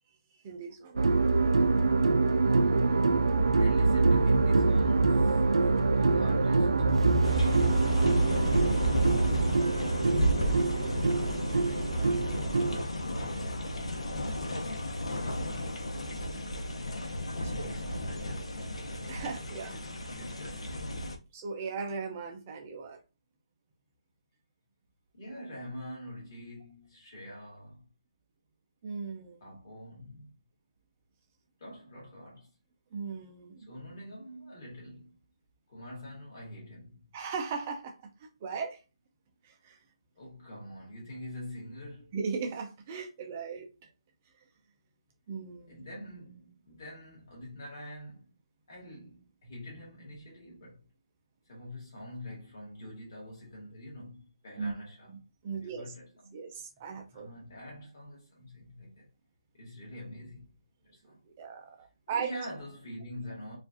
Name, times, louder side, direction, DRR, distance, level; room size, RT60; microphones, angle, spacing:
voice 1, 0.4-1.5 17.6-17.7 19.1-19.7 21.3-23.0 28.8-29.6 32.9-33.7 37.1-38.0 38.4-38.8 39.4-39.8 42.1-43.7 45.3-45.8 54.6-54.7 55.1-55.9 56.3-57.3 61.4-62.3, right 5 dB, 15° right, 0.4 m, -38 dB
sound 1, 1.0-12.8, right 3 dB, 75° right, 0.4 m, -25 dB
voice 2, 3.5-6.9 8.3-9.8 10.4-16.1 17.4-18.7 19.7-20.9 25.1-27.8 29.4-30.3 31.6-32.5 33.7-35.2 35.7-37.1 40.2-42.2 45.7-48.3 48.7-50.8 51.5-55.1 55.5-56.4 57.1-59.1 59.5-60.5 60.9-61.2 62.1-63.6, left 1 dB, 30° left, 1.9 m, -45 dB
sound 2, 7.2-21.2, equal, 80° left, 0.9 m, -33 dB
4.4 x 2.4 x 2.7 m
hypercardioid pair, 180°, 3 cm